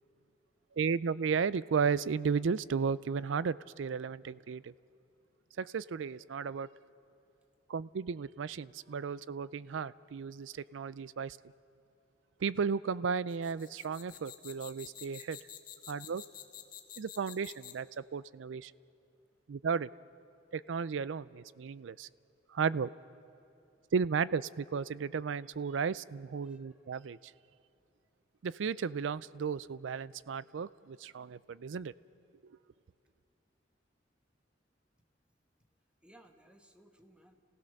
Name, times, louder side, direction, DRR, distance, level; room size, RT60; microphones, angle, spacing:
voice 1, 0.8-4.7 5.6-6.7 7.7-11.4 12.4-15.4 15.9-16.2 17.0-18.7 19.5-19.9 20.5-22.1 22.5-22.9 23.9-27.3 28.4-31.9, right 6 dB, 75° right, 19 dB, 0.4 m, -34 dB
sound 1, 13.3-17.9, left 11 dB, 50° left, 1.6 m, -49 dB
voice 2, 26.4-27.1 27.5-27.6 36.0-37.4, right 1 dB, 5° right, 5 dB, 1.3 m, -62 dB
29.5 x 16.5 x 6.5 m, 2.7 s
head